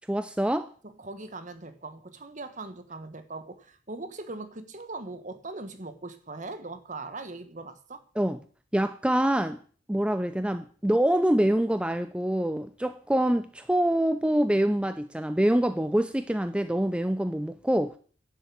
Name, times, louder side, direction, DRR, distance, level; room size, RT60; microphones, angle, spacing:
voice 1, 0.1-0.7 8.2-8.4 8.7-9.6 9.9-18.0, right 1 dB, 5° right, 0.5 m, -25 dB
voice 2, 0.8-8.0, right 3 dB, 40° right, 1.3 m, -40 dB
11.0 x 7.2 x 8.5 m
head